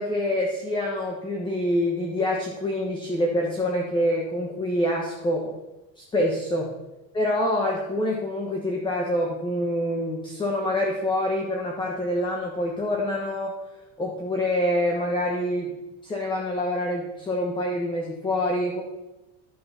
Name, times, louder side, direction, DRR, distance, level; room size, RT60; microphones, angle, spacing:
voice 1, 0.0-5.5 6.0-6.7 7.1-13.5 14.0-15.8 16.0-18.8, left 1 dB, 15° left, 0 dB, 1.2 m, -26 dB
11.5 x 6.5 x 6.9 m, 1.0 s
cardioid pair, 175°, 31 cm